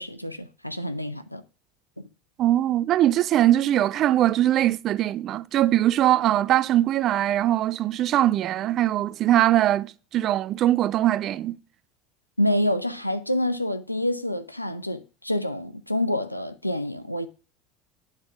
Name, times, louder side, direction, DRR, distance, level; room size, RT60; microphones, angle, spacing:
voice 1, 0.0-1.4 12.4-17.3, left 1 dB, 90° left, 0.5 m, -27 dB
voice 2, 2.4-11.6, right 13 dB, 40° right, 0.4 m, -21 dB
9.6 x 3.7 x 5.6 m
figure-of-eight pair, 70°, 0 cm